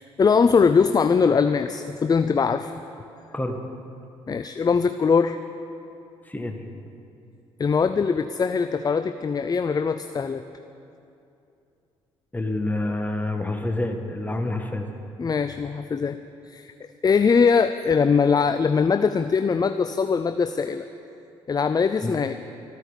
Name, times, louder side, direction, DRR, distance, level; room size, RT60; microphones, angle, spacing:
voice 1, 0.2-2.7 4.3-5.4 7.6-10.4 15.2-16.2 16.5-16.7 17.0-20.8 21.5-22.3, left 5 dB, 30° left, 10 dB, 0.5 m, -21 dB
voice 2, 6.3-6.6 12.3-14.9 22.0-22.1, left 2 dB, 15° left, 4 dB, 1.7 m, -27 dB
14.0 x 9.1 x 7.3 m, 2.7 s
hypercardioid pair, 50°, 13 cm